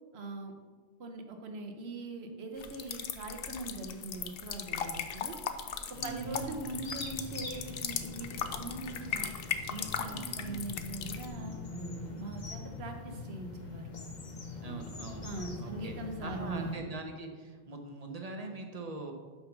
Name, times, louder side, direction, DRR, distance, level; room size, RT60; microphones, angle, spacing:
voice 1, 0.1-0.5 1.0-5.4 5.9-9.3 9.7-13.9 15.2-16.7, right 2 dB, 85° right, 3 dB, 1.2 m, -42 dB
sound 1, 2.6-11.3, left 7 dB, 70° left, 0.8 m, -38 dB
sound 2, 5.9-16.7, left 3 dB, 45° left, 1.0 m, -43 dB
voice 2, 5.9-6.8 10.0-10.6 14.6-15.9 16.2-19.1, right 3 dB, 40° right, 3 dB, 0.9 m, -42 dB
5.9 x 5.2 x 5.8 m, 1.4 s
omnidirectional pair, 1.0 m